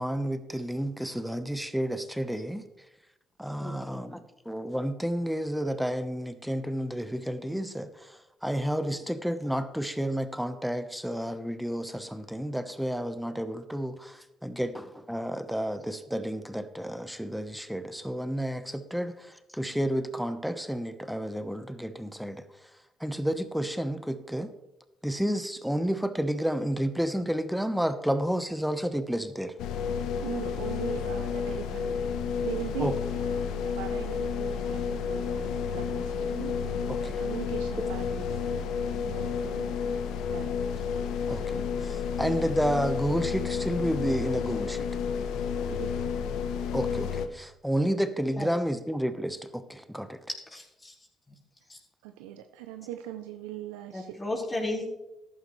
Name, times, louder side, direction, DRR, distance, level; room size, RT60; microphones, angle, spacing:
voice 1, 0.0-2.9 3.4-24.5 25.0-29.6 32.8-32.9 36.9-37.2 41.3-45.0 46.7-50.2, equal, ahead, 10 dB, 1.1 m, -31 dB
voice 2, 3.6-4.0 8.9-9.0 48.4-48.5 50.5-50.9 51.7-51.8 53.9-55.0, left 2 dB, 25° left, -3 dB, 4.8 m, -34 dB
sound 1, 29.6-47.3, left 6 dB, 75° left, 1.0 m, -31 dB
voice 3, 30.2-39.8 40.3-40.7 45.7-46.2 52.0-54.2, right 12 dB, 85° right, 7 dB, 0.6 m, -40 dB
14.5 x 11.0 x 3.3 m, 0.93 s
hypercardioid pair, 55°, 0 cm